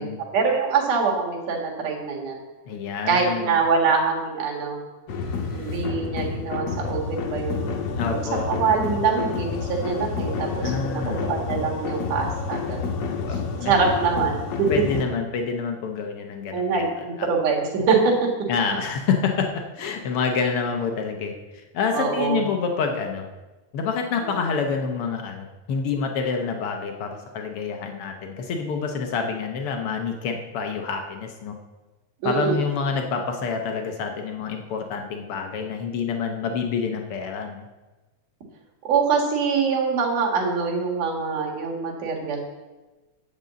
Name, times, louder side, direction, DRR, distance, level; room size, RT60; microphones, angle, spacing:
voice 1, 0.3-2.4 3.1-4.8 5.5-7.7 8.1-8.2 8.5-13.0 13.6-14.7 16.5-18.3 18.7-18.8 21.9-22.4 24.2-24.4 32.2-32.6 38.8-42.4, right 5 dB, 80° right, -1 dB, 3.2 m, -24 dB
voice 2, 2.7-3.6 7.9-8.5 10.6-11.3 13.1-13.7 14.7-16.8 17.2-17.3 18.5-23.3 23.7-31.5 32.2-37.6, left 5 dB, 80° left, 4 dB, 1.2 m, -27 dB
sound 1, 5.1-15.0, left 5 dB, 65° left, 1.9 m, -29 dB
9.5 x 5.2 x 7.5 m, 1.2 s
omnidirectional pair, 3.6 m